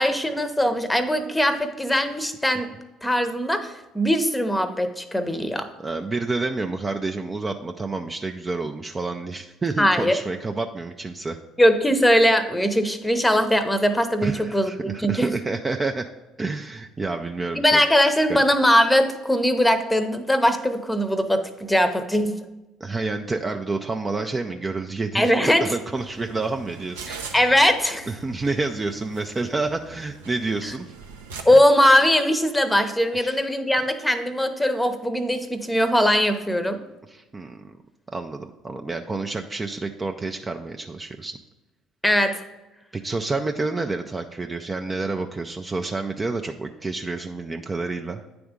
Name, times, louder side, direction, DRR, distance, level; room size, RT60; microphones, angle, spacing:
voice 1, 0.0-2.7 3.0-5.7 9.8-10.2 11.6-15.3 17.5-22.3 25.1-25.7 27.1-28.1 31.4-36.8 42.0-42.4, equal, 10° left, 9 dB, 0.8 m, -20 dB
voice 2, 5.8-11.4 14.2-16.1 16.4-17.8 18.3-18.4 22.8-27.1 28.1-30.9 31.5-31.6 33.2-33.4 37.1-37.8 38.1-41.4 42.9-48.2, right 3 dB, 25° right, 4 dB, 0.5 m, -29 dB
sound 1, 26.0-31.4, right 5 dB, 85° right, 0.6 m, -41 dB
9.3 x 3.5 x 5.1 m, 1.0 s
hypercardioid pair, 60°, 0 cm